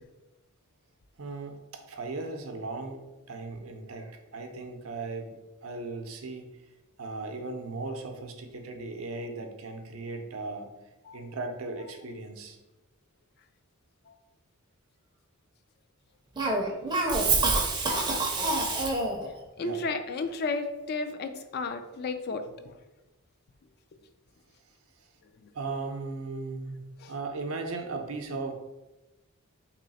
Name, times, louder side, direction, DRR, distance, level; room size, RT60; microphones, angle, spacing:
voice 1, 1.2-3.0 3.3-6.6 7.0-10.8 11.1-12.6 19.6-19.8 25.0-25.1 25.5-26.8 27.1-28.5, right 3 dB, 70° right, 4 dB, 0.6 m, -37 dB
Cough, 16.4-19.3, right 2 dB, 20° right, 0.5 m, -26 dB
voice 2, 19.6-22.8 27.0-27.1, left 3 dB, 50° left, 8 dB, 0.4 m, -33 dB
3.1 x 3.0 x 4.1 m, 1.0 s
head